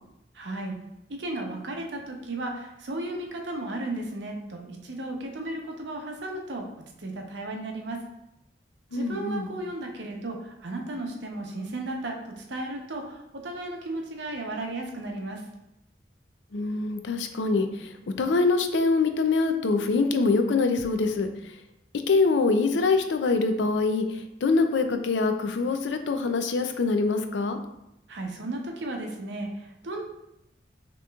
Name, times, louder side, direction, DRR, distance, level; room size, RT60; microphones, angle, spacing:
voice 1, 0.3-0.8 1.2-6.7 7.0-8.0 8.9-15.4 28.1-30.0, right 2 dB, 80° right, 2 dB, 0.7 m, -34 dB
voice 2, 8.9-9.5 16.5-21.3 22.1-27.6, left 3 dB, 90° left, 7 dB, 0.4 m, -24 dB
6.1 x 2.9 x 2.3 m, 0.85 s
head